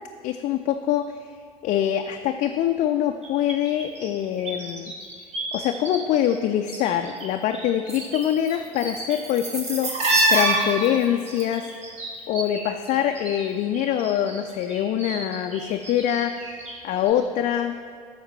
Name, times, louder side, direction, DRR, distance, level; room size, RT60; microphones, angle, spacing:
voice 1, 0.2-1.3 1.6-4.9 5.5-10.0 10.3-11.7 12.3-17.7, left 10 dB, 40° left, 6 dB, 0.4 m, -24 dB
sound 1, 3.2-6.0 6.2-7.3 7.5-13.5 13.7-16.8 17.1-17.2, right 2 dB, 35° right, 1.5 m, -28 dB
8.9 x 6.4 x 3.3 m, 2.1 s
figure-of-eight pair, 65°, 19 cm